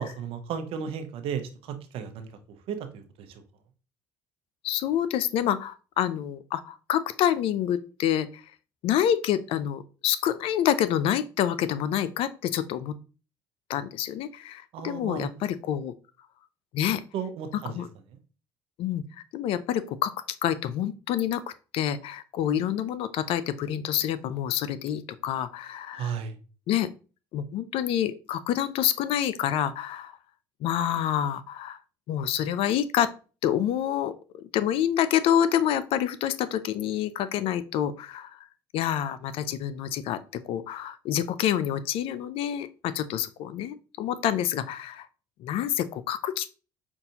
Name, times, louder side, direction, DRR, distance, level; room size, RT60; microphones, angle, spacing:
voice 1, 0.0-3.4 14.7-15.3 17.1-17.8 25.9-26.4, right 7 dB, 65° right, 7 dB, 0.8 m, -34 dB
voice 2, 4.6-8.3 8.8-12.9 13.7-15.9 16.7-17.0 17.5-17.9 18.8-19.0 19.3-20.1 20.4-21.4 21.7-26.1 26.7-26.9 27.3-30.1 30.6-31.8 32.1-33.1 33.4-38.3 38.7-45.1 45.4-46.5, left 10 dB, 60° left, 15 dB, 0.4 m, -27 dB
5.3 x 2.5 x 2.8 m, 0.35 s
hypercardioid pair, 70°, 10 cm